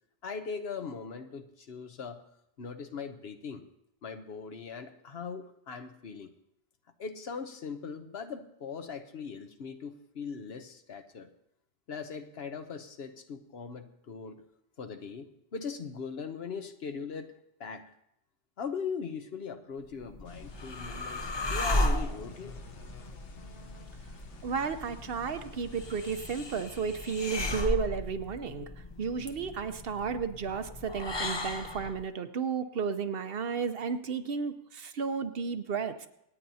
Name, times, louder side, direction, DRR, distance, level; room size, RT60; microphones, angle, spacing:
voice 1, 0.2-2.2 2.6-3.6 4.0-6.3 7.0-11.3 11.9-14.4 14.8-17.3 17.6-17.8 18.6-22.5, left 5 dB, 65° left, 8 dB, 1.1 m, -40 dB
sound 1, 19.9-32.0, left 1 dB, 30° left, 0.6 m, -35 dB
sound 2, 20.2-26.2, left 3 dB, 85° left, 1.4 m, -50 dB
voice 2, 24.4-28.7 29.0-36.1, right 5 dB, 60° right, 9 dB, 0.9 m, -33 dB
26.5 x 9.1 x 2.8 m, 0.78 s
omnidirectional pair, 1.1 m